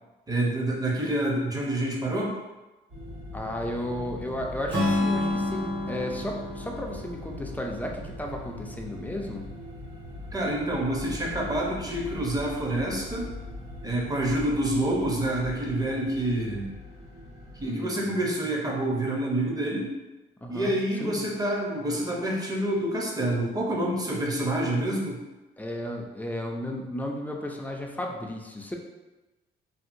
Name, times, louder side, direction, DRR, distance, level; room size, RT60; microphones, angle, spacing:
voice 1, 0.3-2.3 10.3-13.3 13.8-16.7 17.6-19.9 20.5-25.2, right 1 dB, 20° right, -2 dB, 0.7 m, -27 dB
sound 1, 2.9-17.7, left 1 dB, 85° right, 1.4 m, -41 dB
voice 2, 3.3-9.4 17.6-18.2 20.4-21.3 25.6-28.8, left 1 dB, 10° left, 0 dB, 0.4 m, -34 dB
Strum, 4.7-8.9, left 2 dB, 65° right, 1.3 m, -30 dB
2.7 x 2.7 x 2.6 m, 1.1 s
cardioid pair, 90°, 20 cm